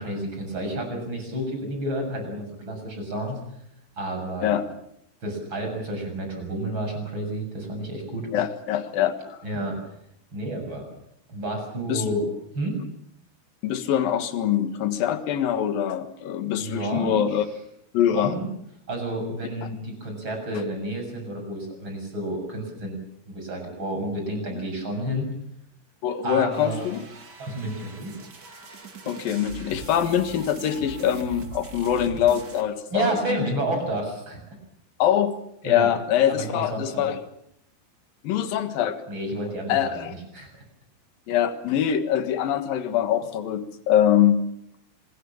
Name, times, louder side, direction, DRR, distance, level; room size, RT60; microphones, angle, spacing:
voice 1, 0.0-3.4 4.0-4.6 5.2-8.3 9.4-9.8 10.3-10.9 11.3-12.3 12.5-12.8 16.6-17.2 18.1-18.5 18.9-23.0 23.3-25.3 26.2-26.9 27.4-28.1 32.9-34.4 35.6-35.9 36.3-37.1 39.1-40.5, right 1 dB, 20° right, 3 dB, 7.5 m, -30 dB
voice 2, 8.3-9.4 11.9-12.0 13.6-17.5 17.9-18.3 19.6-19.7 24.5-24.6 26.0-27.0 29.1-33.5 35.0-35.4 35.6-37.2 38.2-39.0 39.7-40.1 41.3-44.4, left 10 dB, 60° left, 9 dB, 2.5 m, -24 dB
sound 1, 26.5-32.6, right 3 dB, 50° right, 1.2 m, -41 dB
26.5 x 21.5 x 7.2 m, 0.75 s
omnidirectional pair, 5.9 m